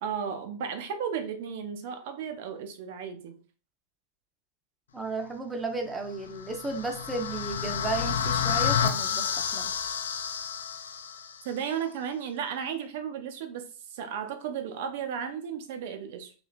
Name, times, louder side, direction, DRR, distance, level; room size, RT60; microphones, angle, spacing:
voice 1, 0.0-3.4 11.4-16.3, right 7 dB, 50° right, 8 dB, 0.6 m, -34 dB
voice 2, 4.9-9.7, right 3 dB, 15° right, 4 dB, 0.7 m, -34 dB
sound 1, 6.3-11.4, left 7 dB, 65° left, 0.3 m, -30 dB
3.1 x 3.0 x 2.5 m, 0.38 s
figure-of-eight pair, 90°, 0 cm